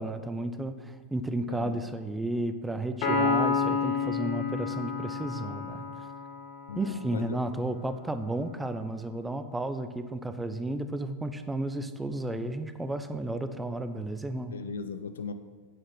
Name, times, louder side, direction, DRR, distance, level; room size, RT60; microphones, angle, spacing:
voice 1, 0.0-6.1 6.8-14.6, right 1 dB, 10° right, 10 dB, 0.7 m, -33 dB
Piano, 3.0-6.6, left 4 dB, 50° left, 2.6 m, -29 dB
voice 2, 6.7-7.2 12.3-12.4 14.5-15.3, left 5 dB, 65° left, 11 dB, 0.7 m, -37 dB
9.3 x 9.1 x 6.3 m, 1.5 s
figure-of-eight pair, 90°, 0 cm